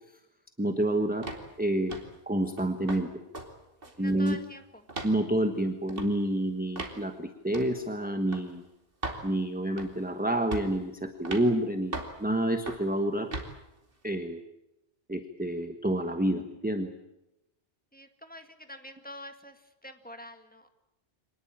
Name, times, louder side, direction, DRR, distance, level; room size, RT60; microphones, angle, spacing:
voice 1, 0.6-1.3 1.6-2.0 2.3-3.1 4.0-4.4 5.0-8.6 9.2-13.4 14.0-14.4 15.1-16.9, right 1 dB, 10° right, 7 dB, 1.2 m, -28 dB
sound 1, 1.2-1.5 1.9-2.2 2.6-3.0 3.3-3.5 3.8-4.5 4.9-5.2 5.9-6.1 6.8-7.0 7.5-7.7 8.3-8.5 9.0-9.2 9.8-10.1 10.5-10.8 11.3-11.5 11.9-12.2 12.7-12.9 13.3-13.5, right 2 dB, 50° right, 2.8 m, -37 dB
voice 2, 3.8-4.8 17.9-20.7, equal, 5° left, 6 dB, 2.0 m, -46 dB
25.0 x 19.5 x 8.7 m, 0.92 s
omnidirectional pair, 1.2 m